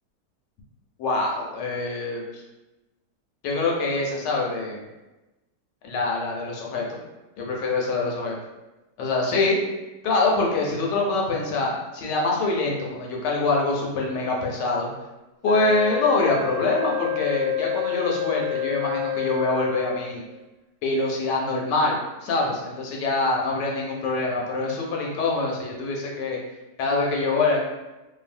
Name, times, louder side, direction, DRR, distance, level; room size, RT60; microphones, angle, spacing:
voice 1, 1.0-2.4 3.4-4.8 5.8-6.8 7.4-8.4 9.0-9.6 10.0-14.9 15.4-20.2 20.8-26.4 26.8-27.6, left 3 dB, 75° left, -2 dB, 1.2 m, -25 dB
Wind instrument woodwind instrument, 15.4-20.2, left 9 dB, 70° right, 1.0 m, -28 dB
2.6 x 2.5 x 2.5 m, 1.1 s
omnidirectional pair, 1.9 m